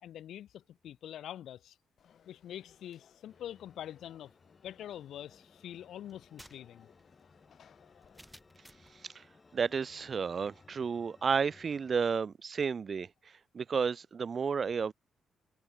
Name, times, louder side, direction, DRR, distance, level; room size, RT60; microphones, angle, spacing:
voice 1, 0.0-1.8 2.3-4.3 4.6-6.9, left 11 dB, 80° left, 0.7 m, -45 dB
Conversation / Crowd, 2.0-8.2, left 8 dB, 65° left, 5.2 m, -64 dB
sound 1, 3.3-12.2, left 4 dB, 30° left, 7.1 m, -62 dB
sound 2, 6.1-9.0, equal, 5° right, 0.8 m, -57 dB
voice 2, 9.5-13.1 13.5-14.9, right 6 dB, 45° right, 0.4 m, -32 dB
cardioid pair, 90°, 0 cm